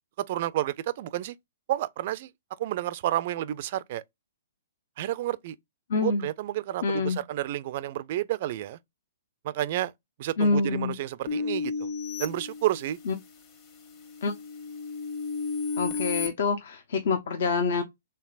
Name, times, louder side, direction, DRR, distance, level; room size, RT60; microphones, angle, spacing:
voice 1, 0.3-1.3 1.7-2.3 2.6-4.0 5.0-5.6 6.0-8.8 9.4-9.9 10.2-11.9 12.2-13.0, right 14 dB, 45° right, 0.3 m, -30 dB
voice 2, 5.9-6.3 6.8-7.2 10.4-10.9 13.1-13.2 14.2-14.3 15.8-17.8, left 4 dB, 60° left, 0.7 m, -26 dB
sound 1, 11.3-13.2 13.7-16.3, left 4 dB, 35° left, 1.1 m, -33 dB
4.4 x 3.4 x 2.4 m
figure-of-eight pair, 120°, 0 cm